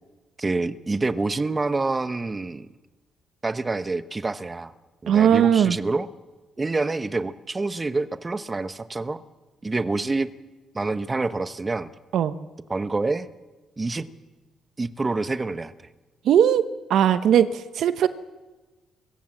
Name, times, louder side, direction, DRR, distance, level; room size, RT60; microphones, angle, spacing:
voice 1, 0.4-2.7 3.4-4.7 5.0-6.1 6.6-9.2 9.6-10.3 10.7-11.9 12.7-13.3 13.8-14.1 14.8-15.7, right 3 dB, 25° right, 12 dB, 1.0 m, -27 dB
voice 2, 5.1-5.8 12.1-12.3 16.2-16.6 16.9-18.1, right 9 dB, 70° right, 12 dB, 0.9 m, -19 dB
23.0 x 16.5 x 7.4 m, 1.2 s
cardioid pair, 90°, 0 cm